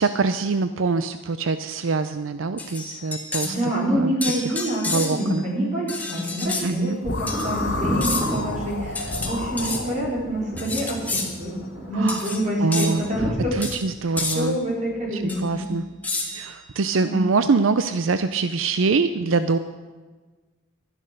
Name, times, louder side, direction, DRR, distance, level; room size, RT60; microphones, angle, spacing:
voice 1, 0.0-4.1 4.9-5.4 6.6-7.0 11.9-12.3 12.6-14.6 15.1-15.8 16.3-19.6, right 4 dB, 80° right, 11 dB, 0.5 m, -24 dB
sound 1, 2.6-3.6 4.2-5.3 5.9-6.7 7.3-7.5 8.0-8.4 8.9-9.8 10.6-11.3 12.1-12.4 12.7-13.0 13.6-13.8 14.2-14.4 15.3-15.4 16.0-16.5, left 3 dB, 10° left, 1.5 m, -30 dB
voice 2, 3.4-11.6 11.9-13.5 14.3-15.7 17.0-17.2, right 1 dB, 35° right, -3 dB, 4.0 m, -26 dB
sound 2, 7.0-10.2, left 2 dB, 65° left, 1.5 m, -30 dB
Thunder, 7.2-13.3, right 1 dB, 20° right, 4.6 m, -33 dB
12.5 x 10.5 x 6.5 m, 1.3 s
head